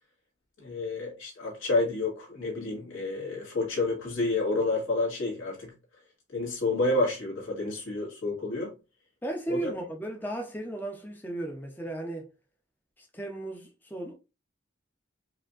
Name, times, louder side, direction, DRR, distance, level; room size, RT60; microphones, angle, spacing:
voice 1, 0.6-5.7 6.3-8.7 9.5-9.7, left 2 dB, 85° left, 1.9 m, -29 dB
voice 2, 9.2-12.3 13.0-14.1, right 1 dB, 10° left, 0.5 m, -35 dB
4.8 x 2.7 x 2.4 m
head